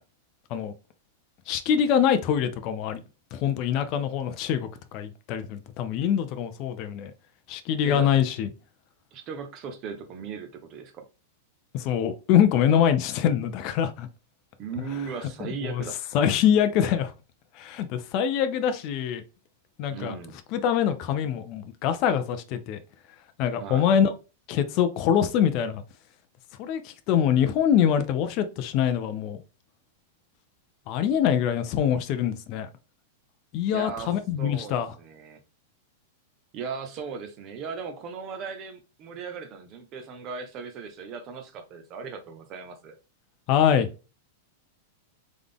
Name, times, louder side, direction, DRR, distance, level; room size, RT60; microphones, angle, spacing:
voice 1, 1.5-3.0 3.3-7.1 7.5-8.5 11.7-14.1 15.4-15.8 16.1-17.1 17.5-19.2 19.8-20.1 20.5-22.8 23.4-24.1 24.5-25.8 26.6-29.4 30.9-32.7 33.5-34.9 43.5-43.9, left 9 dB, 30° left, 0.4 m, -24 dB
voice 2, 9.1-11.1 14.6-16.0 19.9-20.4 23.6-23.9 33.7-34.1 34.4-35.4 36.5-43.0, right 5 dB, 25° right, 0.7 m, -37 dB
3.8 x 3.5 x 3.4 m
supercardioid pair, 180°, 0 cm